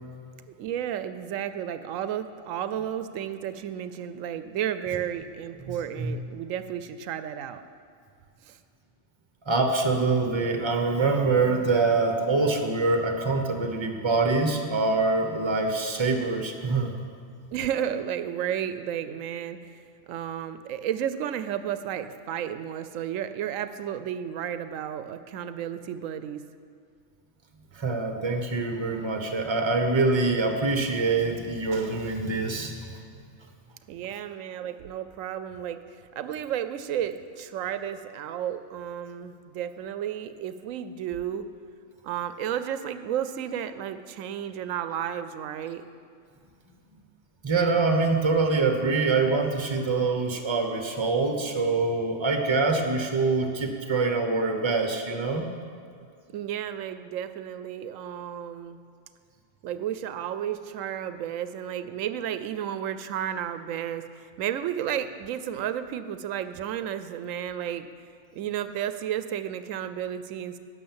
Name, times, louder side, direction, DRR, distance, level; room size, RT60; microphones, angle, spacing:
voice 1, 0.6-7.6 8.4-8.6 17.5-26.5 33.9-41.5 42.0-45.8 56.3-58.8 59.6-67.9 68.3-70.6, right 10 dB, 85° right, 11 dB, 1.0 m, -32 dB
voice 2, 5.7-6.1 9.4-16.9 27.7-33.0 47.4-55.5, right 3 dB, 25° right, 5 dB, 1.0 m, -25 dB
11.5 x 6.6 x 8.7 m, 2.3 s
omnidirectional pair, 1.3 m